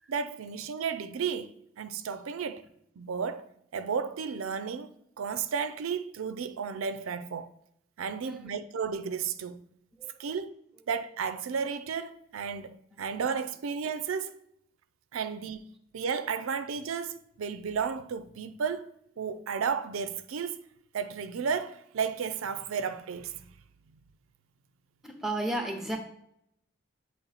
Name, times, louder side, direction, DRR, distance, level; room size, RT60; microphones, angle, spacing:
voice 1, 0.1-2.6 3.0-4.9 5.2-7.5 8.0-9.6 10.2-10.6 10.9-14.3 15.1-15.6 15.9-18.9 19.2-20.6 20.9-23.6, right 6 dB, 90° right, 0.4 m, -33 dB
voice 2, 8.2-8.5 10.0-10.2 25.0-26.0, right 1 dB, ahead, 0.7 m, -34 dB
8.3 x 3.1 x 4.1 m
head